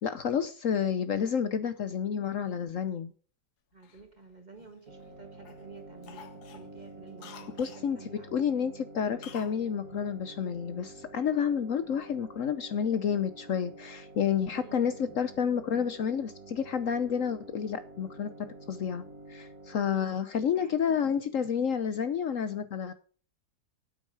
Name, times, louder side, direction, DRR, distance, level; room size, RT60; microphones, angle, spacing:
voice 1, 0.0-3.1 7.6-19.0 19.3-22.9, left 7 dB, 60° left, 1.1 m, -30 dB
voice 2, 3.7-8.5 14.5-15.0 19.8-20.3 20.5-20.8, right 4 dB, 30° right, 1.8 m, -51 dB
Cough, 3.8-5.1 5.4-5.7 6.0-7.9 9.2-9.6 9.9-10.0, left 8 dB, 80° left, 1.6 m, -50 dB
sound 1, 4.9-19.8, right 2 dB, 55° right, 2.1 m, -49 dB
9.3 x 8.8 x 4.7 m
omnidirectional pair, 1.7 m